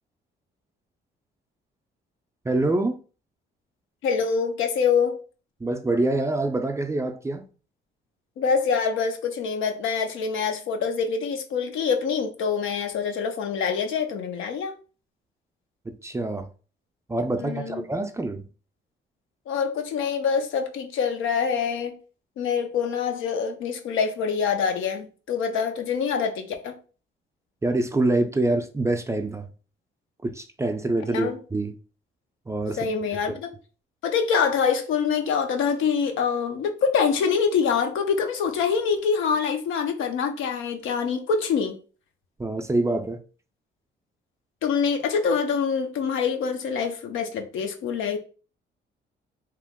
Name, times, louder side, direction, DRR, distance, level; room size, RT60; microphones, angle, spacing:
voice 1, 2.4-3.0 5.6-7.5 15.9-16.5 17.1-18.4 27.6-29.5 30.2-31.8 32.5-32.9 33.3-33.4 42.4-43.2, right 2 dB, 15° right, 0.4 m, -25 dB
voice 2, 4.0-5.2 8.4-14.7 17.4-17.9 19.5-22.0 22.4-26.8 31.1-31.4 32.8-33.6 34.0-41.8 44.6-48.2, left 6 dB, 85° left, 0.6 m, -25 dB
2.9 x 2.0 x 3.5 m
cardioid pair, 90°, 20 cm